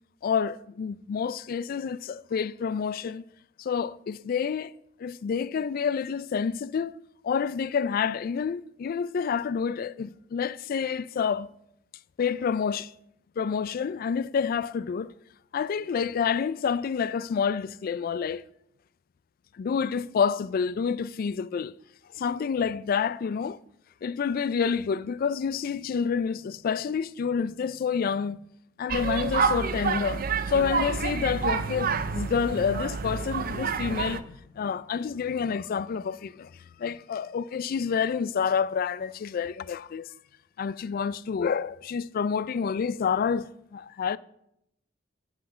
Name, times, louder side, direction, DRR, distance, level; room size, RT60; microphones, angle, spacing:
voice 1, 0.2-3.2 3.6-4.7 5.0-7.0 7.2-11.5 12.2-12.9 13.4-15.1 15.5-18.4 19.6-21.7 22.1-23.6 24.0-28.4 28.8-36.5 36.8-40.1 40.6-44.2, left 6 dB, 50° left, 0.3 m, -28 dB
sound 1, 28.9-34.2, right 5 dB, 50° right, 0.5 m, -28 dB
7.8 x 5.7 x 7.4 m
head